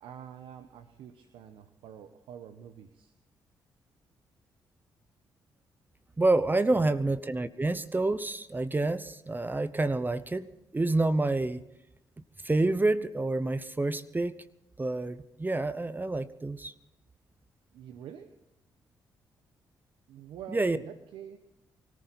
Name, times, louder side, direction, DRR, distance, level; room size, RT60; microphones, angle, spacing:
voice 1, 0.0-3.1 6.7-6.9 17.7-18.3 20.1-21.4, right 9 dB, 80° right, 1.0 m, -46 dB
voice 2, 6.2-10.5 10.7-11.6 12.4-14.4 14.8-16.7 20.5-20.8, right 2 dB, 20° right, 0.9 m, -28 dB
24.0 x 14.0 x 4.2 m
supercardioid pair, 50°, 9 cm